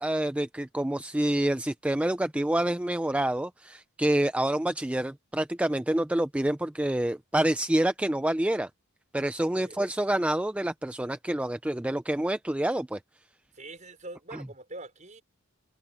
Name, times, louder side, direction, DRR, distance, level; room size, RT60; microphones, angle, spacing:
voice 1, 0.0-8.7 9.1-13.0, right 1 dB, 5° right, 0.3 m, -27 dB
voice 2, 13.5-15.2, right 2 dB, 35° right, 5.6 m, -44 dB
open air
head